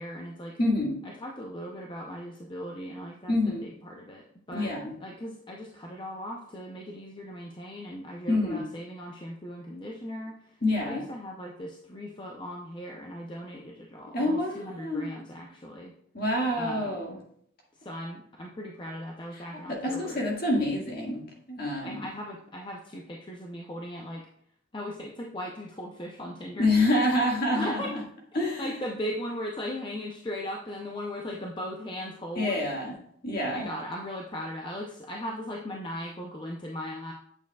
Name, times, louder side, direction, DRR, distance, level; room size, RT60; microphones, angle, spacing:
voice 1, 0.0-0.6 1.0-4.7 5.0-15.9 16.5-17.0 17.8-20.2 21.8-24.3 24.7-26.7 27.5-27.9 28.6-32.6 33.5-37.1, equal, 25° left, 0 dB, 0.6 m, -38 dB
voice 2, 0.6-1.0 3.3-3.7 4.5-4.9 8.3-8.7 10.6-11.0 14.1-15.1 16.1-17.2 19.7-22.0 26.6-27.8 28.3-28.8 32.3-32.9 33.2-33.7, left 1 dB, 50° left, -1 dB, 1.8 m, -27 dB
8.2 x 7.0 x 2.3 m, 0.66 s
head